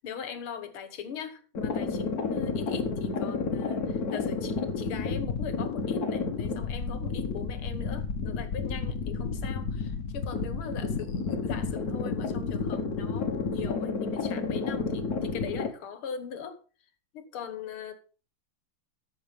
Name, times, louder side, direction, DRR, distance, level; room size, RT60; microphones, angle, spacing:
voice 1, 0.0-16.6 17.1-17.9, left 7 dB, 80° left, 2.2 m, -40 dB
sound 1, 1.5-15.7, left 4 dB, 50° left, 1.7 m, -31 dB
13.5 x 6.2 x 5.3 m
omnidirectional pair, 2.3 m